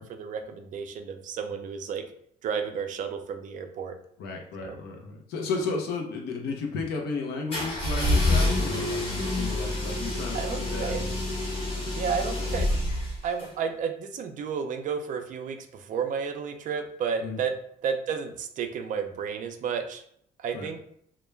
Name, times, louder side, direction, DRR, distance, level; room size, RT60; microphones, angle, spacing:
voice 1, 0.0-2.0 2.4-3.9 4.6-4.8 10.3-11.1 11.9-12.7 13.2-17.5 17.8-20.0 20.4-20.8, right 6 dB, 50° right, 6 dB, 0.4 m, -32 dB
voice 2, 4.2-11.2 17.2-17.4 20.5-20.8, left 4 dB, 75° left, 2 dB, 0.6 m, -33 dB
sound 1, 7.5-13.5, left 1 dB, 35° left, 1.0 m, -27 dB
2.2 x 2.1 x 3.2 m, 0.68 s
cardioid pair, 110°, 17 cm